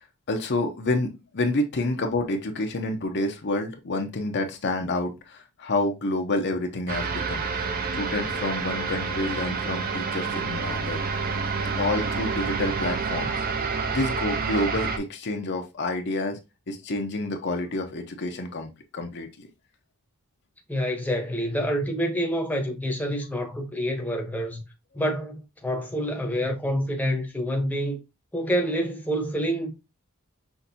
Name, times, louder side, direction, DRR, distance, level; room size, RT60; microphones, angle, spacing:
voice 1, 0.3-11.0 11.8-13.3 13.9-16.4 16.7-19.5, left 2 dB, 55° left, 0.8 m, -28 dB
sound 1, 6.9-15.0, right 5 dB, 45° right, 0.7 m, -28 dB
voice 2, 20.7-24.6 24.9-28.0 28.3-29.7, equal, 10° left, 0.9 m, -27 dB
5.8 x 3.2 x 2.7 m
head